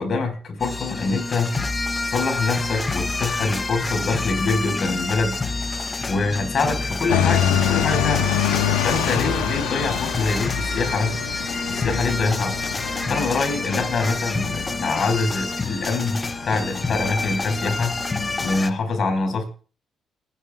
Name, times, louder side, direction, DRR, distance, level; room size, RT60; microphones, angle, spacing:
voice 1, 0.0-1.5 2.0-5.4 6.1-8.3 8.8-11.2 11.7-12.5 13.1-19.5, left 3 dB, 55° left, 5 dB, 4.8 m, -25 dB
sound 1, 0.6-18.7, left 3 dB, 30° left, 1.1 m, -28 dB
sound 2, 7.1-18.6, left 9 dB, 85° left, 1.3 m, -27 dB
29.5 x 9.9 x 2.4 m, 0.38 s
supercardioid pair, 55°, 0 cm